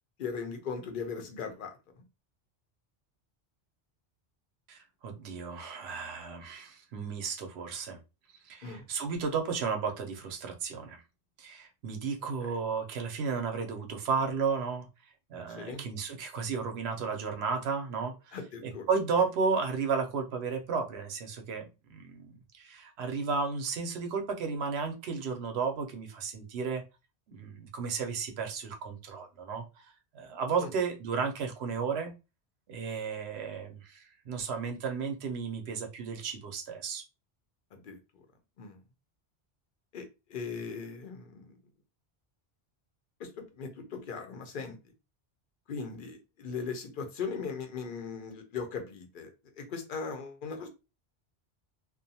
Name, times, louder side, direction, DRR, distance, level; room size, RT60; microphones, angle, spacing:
voice 1, 0.2-2.0 8.6-8.9 12.4-12.6 15.5-15.8 18.3-18.9 30.6-30.7 37.7-38.2 38.6-38.8 39.9-40.0 40.3-41.6 43.2-44.8 45.7-50.7, left 5 dB, 60° left, 5 dB, 0.8 m, -39 dB
voice 2, 4.7-8.0 8.4-11.0 11.4-14.9 15.3-26.8 27.3-29.6 30.1-32.1 32.7-37.0, right 5 dB, 85° right, 5 dB, 0.9 m, -33 dB
2.4 x 2.2 x 2.6 m, 0.28 s
omnidirectional pair, 1.1 m